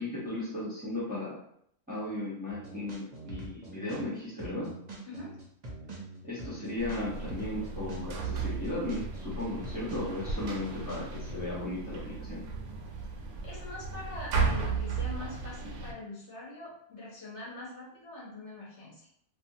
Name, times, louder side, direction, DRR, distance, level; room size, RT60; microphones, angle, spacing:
voice 1, 0.0-1.4 1.9-4.7 6.2-12.4, left 2 dB, 10° right, -9 dB, 0.7 m, -36 dB
sound 1, 2.5-4.1 4.4-11.3, right 2 dB, 45° right, 0.6 m, -44 dB
sound 2, 6.8-15.9, right 4 dB, 90° right, 1.1 m, -35 dB
voice 2, 13.4-19.1, left 2 dB, 55° left, -6 dB, 1.2 m, -43 dB
2.8 x 2.4 x 2.7 m, 0.69 s
omnidirectional pair, 1.5 m